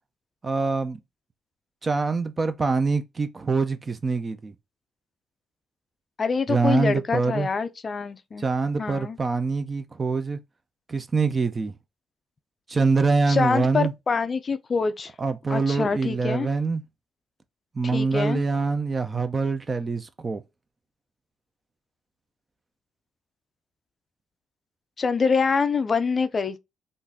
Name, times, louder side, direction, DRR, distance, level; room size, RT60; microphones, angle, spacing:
voice 1, 0.4-1.0 1.8-4.5 6.5-7.5 8.4-10.4 10.9-11.7 12.7-13.9 15.2-16.8 17.7-20.4, right 4 dB, 30° right, 0.5 m, -24 dB
voice 2, 6.2-8.4 8.8-9.2 13.3-15.1 15.5-16.5 17.9-18.4 25.0-26.6, left 5 dB, 40° left, 0.4 m, -25 dB
3.8 x 2.5 x 2.6 m
cardioid pair, 90°, 0 cm